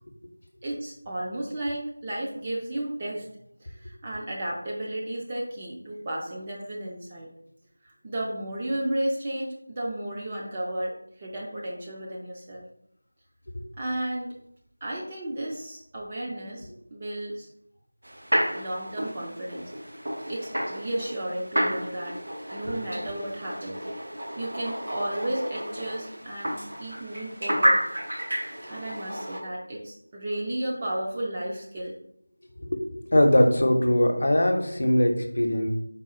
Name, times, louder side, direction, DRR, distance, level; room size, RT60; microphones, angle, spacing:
voice 1, 0.6-3.3 3.6-7.3 7.8-12.7 13.8-14.4 14.8-17.5 18.5-19.7 20.3-22.2 22.5-23.8 24.4-27.8 28.7-32.0, right 1 dB, 20° right, -2 dB, 0.4 m, -33 dB
sound 1, 18.0-29.4, equal, 65° right, 0.8 m, -30 dB
voice 2, 32.6-35.7, left 1 dB, 55° left, 3 dB, 0.7 m, -21 dB
4.1 x 2.3 x 3.7 m, 0.71 s
figure-of-eight pair, 175°, 0 cm